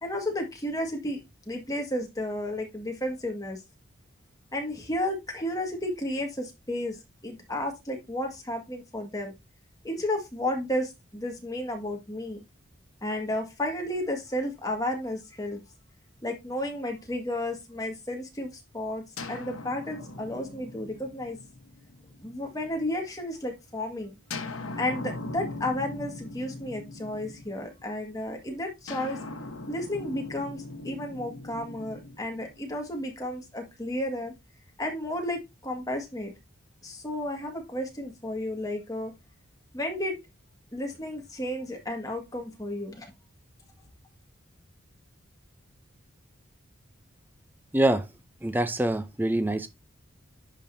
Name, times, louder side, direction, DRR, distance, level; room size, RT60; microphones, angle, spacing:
voice 1, 0.0-1.2 1.5-3.6 4.5-9.4 9.8-12.4 13.0-15.6 16.2-21.4 22.2-24.1 24.8-29.2 29.7-34.3 34.8-36.3 36.8-39.1 39.7-40.2 40.7-43.1, left 1 dB, 15° left, 1.8 m, -32 dB
sound 1, 19.2-23.0 24.3-27.9 28.9-33.0, left 2 dB, 85° left, 1.2 m, -40 dB
voice 2, 47.7-48.1 48.4-49.7, right 1 dB, 10° right, 0.5 m, -25 dB
10.5 x 5.2 x 2.7 m
head